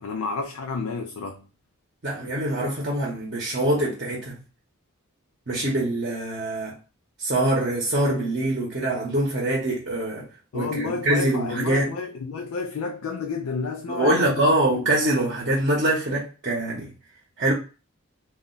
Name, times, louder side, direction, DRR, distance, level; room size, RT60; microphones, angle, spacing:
voice 1, 0.0-1.5 10.5-14.5 14.8-14.9, left 4 dB, 80° left, 0.4 m, -30 dB
voice 2, 2.0-4.4 5.5-6.8 7.2-10.3 10.5-11.9 13.9-16.9 17.4-17.5, right 1 dB, 45° right, 0.8 m, -24 dB
2.4 x 2.1 x 3.7 m
head